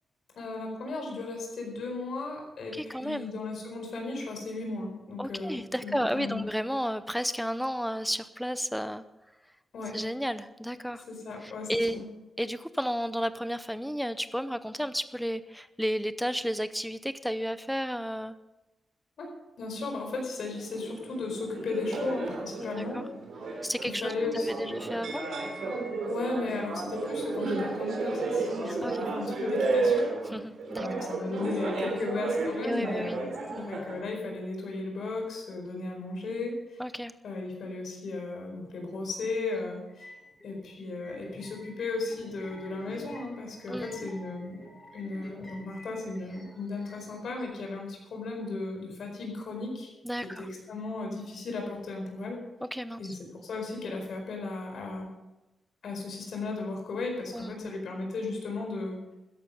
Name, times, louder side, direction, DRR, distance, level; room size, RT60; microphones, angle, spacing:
voice 1, 0.3-6.5 9.7-9.9 11.1-12.1 19.2-19.3 19.6-23.0 23.5-24.8 26.1-30.1 30.8-36.8 37.2-40.1 40.4-44.6 44.9-52.4 53.0-55.1 55.8-59.1, left 3 dB, 65° left, 2 dB, 4.6 m, -35 dB
voice 2, 2.7-3.3 5.2-9.0 9.9-11.0 11.4-12.0 12.4-18.3 22.6-23.0 23.6-25.2 28.6-29.0 30.3-31.1 32.6-33.2 33.5-33.7 36.8-37.1 43.7-43.9 50.0-50.5 52.6-53.1 57.3-57.7, equal, ahead, 13 dB, 0.6 m, -32 dB
sound 1, 20.5-34.0, right 3 dB, 70° right, 3.4 m, -32 dB
sound 2, 39.1-39.3 39.5-47.4, left 1 dB, 20° left, 3.9 m, -49 dB
14.0 x 11.0 x 5.5 m, 1.0 s
wide cardioid pair, 165°, 0 cm